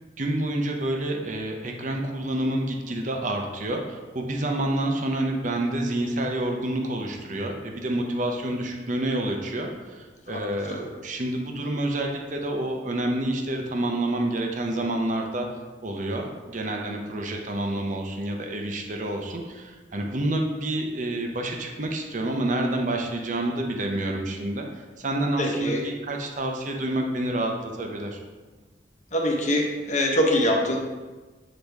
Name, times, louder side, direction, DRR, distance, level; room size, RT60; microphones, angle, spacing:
voice 1, 0.2-15.5 15.8-24.7 25.0-28.2, right 1 dB, 45° right, 2 dB, 0.7 m, -28 dB
voice 2, 25.4-25.8 29.1-30.8, left 1 dB, 40° left, 0 dB, 1.0 m, -23 dB
8.1 x 3.9 x 3.5 m, 1.3 s
head